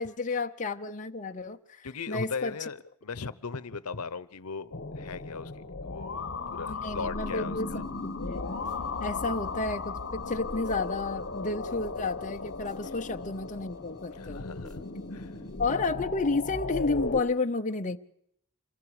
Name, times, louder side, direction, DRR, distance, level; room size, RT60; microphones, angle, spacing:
voice 1, 0.0-2.5 6.7-7.7 8.0-8.6 9.0-14.5 15.6-18.0, left 3 dB, 35° left, 0.8 m, -31 dB
voice 2, 1.8-7.9 14.1-14.8 15.1-15.3, left 5 dB, 85° left, 0.9 m, -38 dB
sound 1, 4.7-17.2, left 3 dB, 55° left, 1.2 m, -36 dB
sound 2, 7.7-15.7, left 1 dB, 15° right, 2.8 m, -55 dB
27.0 x 22.5 x 5.0 m
head